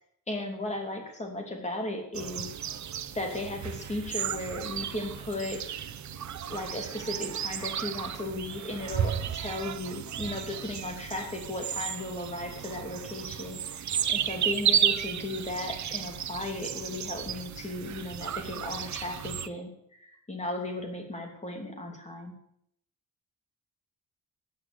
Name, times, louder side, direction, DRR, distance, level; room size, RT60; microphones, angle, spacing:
voice 1, 0.3-2.5 3.1-5.6 6.5-19.7 20.0-22.3, left 1 dB, 20° left, 2 dB, 3.0 m, -36 dB
sound 1, 2.1-19.5, right 9 dB, 60° right, 0.9 m, -33 dB
14.5 x 8.3 x 8.2 m, 0.73 s
wide cardioid pair, 155°, 33 cm